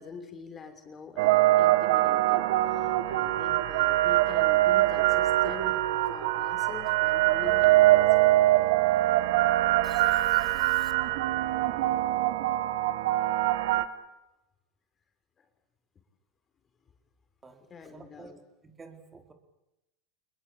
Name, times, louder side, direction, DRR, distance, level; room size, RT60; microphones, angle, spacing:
voice 1, 0.0-8.2 15.4-15.5 17.7-18.4, left 5 dB, 30° left, 8 dB, 5.8 m, -45 dB
sound 1, 1.2-13.8, right 16 dB, 65° right, 1.6 m, -23 dB
sound 2, 7.4-13.5, right 5 dB, 45° right, 7.4 m, -47 dB
sound 3, 8.7-13.4, right 6 dB, 90° right, 5.4 m, -52 dB
voice 2, 9.8-10.9 17.4-17.6 17.9-18.3 18.6-19.3, right 4 dB, 20° right, 5 dB, 4.5 m, -51 dB
27.5 x 21.5 x 8.7 m, 0.92 s
hypercardioid pair, 85°, 0 cm